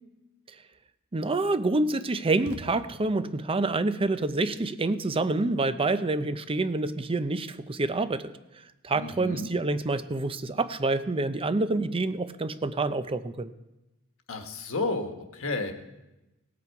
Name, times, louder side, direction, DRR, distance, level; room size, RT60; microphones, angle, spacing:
voice 1, 1.1-8.3 8.8-13.5, right 2 dB, 25° right, 12 dB, 0.5 m, -27 dB
sound 1, 2.4-3.4, right 2 dB, 80° right, 1.0 m, -45 dB
voice 2, 8.9-9.5 14.3-15.7, left 2 dB, 65° left, 5 dB, 1.4 m, -31 dB
18.5 x 8.5 x 4.7 m, 1.0 s
head